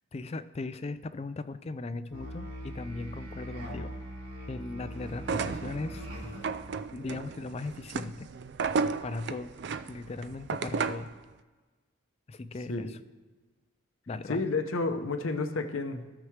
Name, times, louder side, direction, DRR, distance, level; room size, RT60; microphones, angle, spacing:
voice 1, 0.1-3.9 4.5-6.1 6.9-8.3 9.0-9.5 9.9-11.1 12.3-13.0 14.1-14.4, left 3 dB, 30° left, 13 dB, 0.3 m, -38 dB
Musical instrument, 2.1-6.6, equal, 80° right, 3.1 m, -41 dB
sound 1, 5.2-11.1, right 5 dB, 55° right, 0.3 m, -34 dB
voice 2, 14.3-16.1, left 3 dB, 75° left, 8 dB, 0.7 m, -31 dB
16.5 x 6.0 x 3.2 m, 1.3 s
head